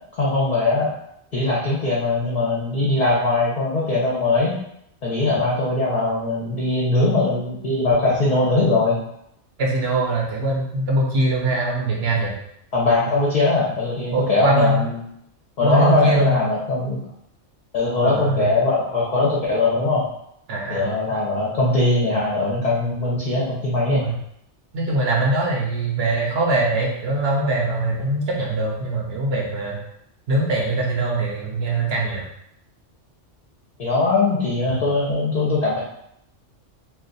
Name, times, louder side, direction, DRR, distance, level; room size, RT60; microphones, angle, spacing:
voice 1, 0.2-0.9 1.3-4.6 5.0-9.0 12.7-15.0 15.6-17.0 17.7-20.0 20.7-24.0 33.8-35.8, left 2 dB, 45° left, -6 dB, 0.7 m, -21 dB
voice 2, 9.6-12.3 14.1-14.8 15.6-16.4 18.0-18.5 20.5-20.9 23.9-24.2 24.7-29.8 30.3-32.3, right 2 dB, 60° right, -2 dB, 0.8 m, -22 dB
2.4 x 2.3 x 3.8 m, 0.75 s
omnidirectional pair, 1.3 m